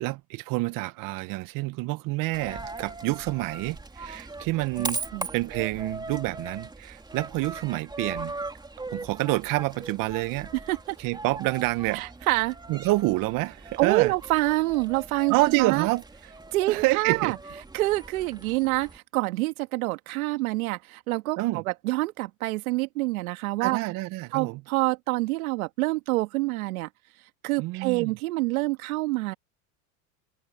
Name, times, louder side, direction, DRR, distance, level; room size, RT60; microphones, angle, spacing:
voice 1, 0.0-5.0 5.3-8.3 8.9-10.5 11.0-12.0 12.7-14.1 15.3-16.0 16.7-17.3 21.4-21.6 23.6-24.6 27.6-28.1, right 21 dB, 50° right, 1.0 m, -27 dB
Coin (dropping), 2.3-19.0, right 2 dB, 10° right, 3.0 m, -40 dB
voice 2, 11.9-12.6 13.8-15.9 16.5-17.4 17.7-23.8 24.3-26.9 27.4-29.3, right 20 dB, 80° right, 2.0 m, -27 dB
supercardioid pair, 110°, 42 cm